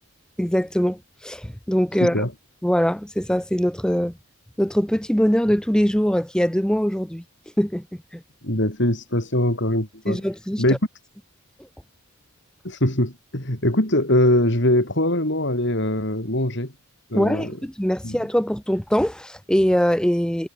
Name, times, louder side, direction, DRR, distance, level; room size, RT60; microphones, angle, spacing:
voice 1, 0.4-2.3 2.6-4.1 4.6-7.2 7.6-7.8 8.1-8.2 10.1-10.6 17.1-20.5, equal, 5° left, 1.0 m, -22 dB
voice 2, 2.0-2.3 8.4-10.2 10.6-10.8 12.6-16.7 17.1-17.6 18.0-18.2, left 1 dB, 55° left, 5.5 m, -22 dB
head